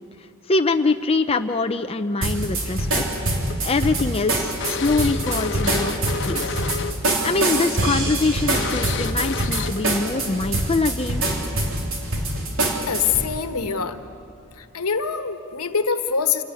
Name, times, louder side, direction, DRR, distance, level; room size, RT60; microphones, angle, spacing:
voice 1, 0.5-3.0 3.6-6.0 6.2-6.6 7.2-11.2, left 3 dB, 25° left, 7 dB, 0.6 m, -23 dB
sound 1, 2.2-13.3, right 1 dB, 65° right, 3.4 m, -24 dB
sound 2, 3.5-7.1 7.4-7.6 8.1-8.2 8.5-10.0, left 4 dB, 55° left, 1.0 m, -30 dB
voice 2, 12.9-14.0 14.6-16.4, left 6 dB, 85° left, 8 dB, 1.3 m, -24 dB
27.0 x 18.0 x 9.7 m, 2.7 s
head